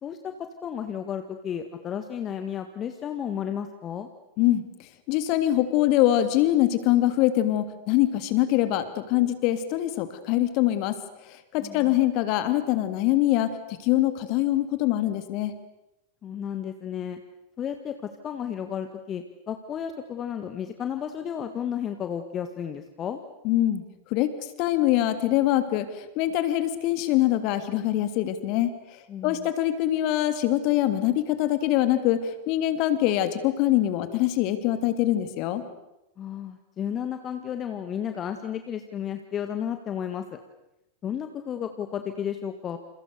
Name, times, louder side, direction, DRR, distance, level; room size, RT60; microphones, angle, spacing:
voice 1, 0.0-4.1 11.6-12.0 16.2-17.2 17.6-23.2 29.1-29.5 36.2-40.4 41.0-42.8, left 8 dB, 25° left, 8 dB, 1.9 m, -33 dB
voice 2, 5.1-11.0 11.5-15.5 23.4-23.8 24.1-24.3 24.6-28.7 29.2-35.6, left 13 dB, 45° left, 11 dB, 3.0 m, -23 dB
29.5 x 28.5 x 6.9 m, 0.93 s
figure-of-eight pair, 90°, 0 cm